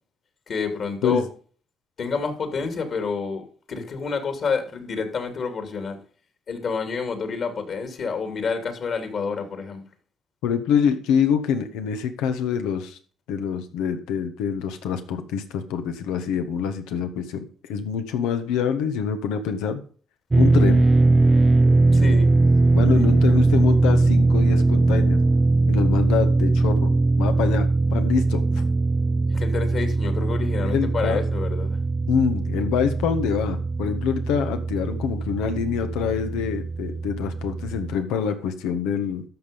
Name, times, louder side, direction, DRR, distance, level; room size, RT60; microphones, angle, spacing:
voice 1, 0.5-1.2 2.0-3.4 3.7-6.0 6.5-9.8 21.9-22.3 29.3-31.8, left 5 dB, 55° left, 3.0 m, -28 dB
voice 2, 10.4-13.0 13.3-19.8 20.4-20.8 22.7-25.2 25.7-26.9 27.2-28.4 30.6-31.2 32.1-39.2, left 7 dB, 90° left, 1.5 m, -25 dB
sound 1, 20.3-38.0, right 3 dB, 25° right, 0.4 m, -20 dB
13.5 x 6.0 x 5.3 m
supercardioid pair, 70°, 0 cm